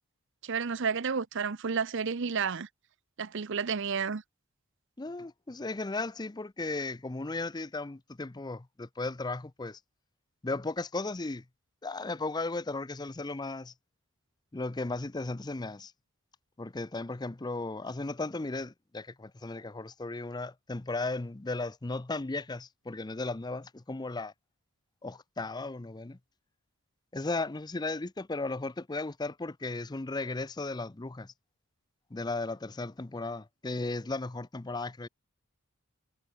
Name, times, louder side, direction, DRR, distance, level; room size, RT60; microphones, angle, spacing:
voice 1, 0.4-2.7 3.2-4.2, right 5 dB, 55° right, 0.7 m, -31 dB
voice 2, 5.0-9.8 10.4-11.4 11.8-13.7 14.5-15.9 16.6-24.3 25.0-26.2 27.1-31.3 32.1-35.1, left 3 dB, 20° left, 0.5 m, -35 dB
head